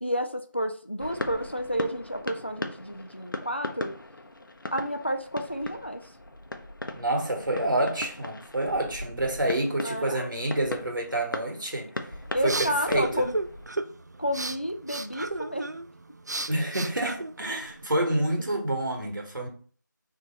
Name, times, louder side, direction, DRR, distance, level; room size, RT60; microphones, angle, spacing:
voice 1, 0.0-3.9 4.7-6.0 9.8-10.3 12.3-13.4 14.2-15.6, equal, 35° left, 0.4 m, -30 dB
sound 1, 1.0-13.7, left 1 dB, 90° left, 0.7 m, -38 dB
voice 2, 6.9-11.9 12.4-13.3 16.5-19.5, right 1 dB, 80° right, 1.6 m, -28 dB
sound 2, 12.0-17.9, right 2 dB, 60° right, 0.4 m, -35 dB
3.3 x 2.8 x 4.5 m
figure-of-eight pair, 180°, 11 cm